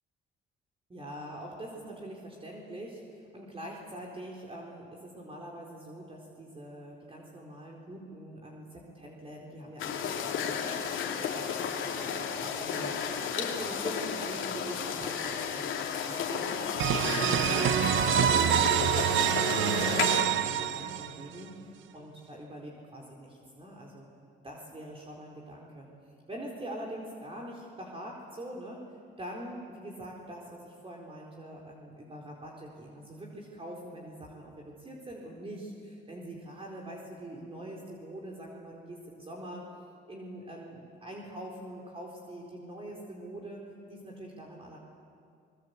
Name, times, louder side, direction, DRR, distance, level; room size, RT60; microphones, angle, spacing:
voice 1, 0.9-11.5 11.8-16.6 17.2-24.1 24.4-25.9 26.3-28.8 29.2-39.7 40.1-43.6 43.9-44.8, right 1 dB, 30° right, -2 dB, 4.2 m, -43 dB
sound 1, 9.8-20.2, left 7 dB, 85° left, 2.8 m, -33 dB
sound 2, 16.8-21.4, right 10 dB, 75° right, 0.9 m, -26 dB
26.0 x 21.5 x 8.3 m, 2.3 s
cardioid pair, 90°, 20 cm